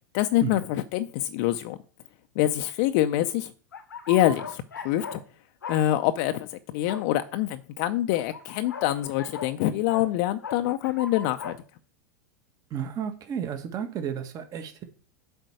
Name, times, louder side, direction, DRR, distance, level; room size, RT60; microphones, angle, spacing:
voice 1, 0.1-1.8 2.4-3.5 4.1-5.2 5.7-11.6, left 14 dB, 55° left, 0.6 m, -25 dB
sound 1, 3.7-5.2 5.6-5.8 6.9-7.1 8.1-9.5 9.9-10.1 10.4-11.6, left 5 dB, 90° left, 1.1 m, -38 dB
voice 2, 12.7-14.8, right 8 dB, 35° right, 1.6 m, -32 dB
7.8 x 4.4 x 6.4 m
hypercardioid pair, 100°, 10 cm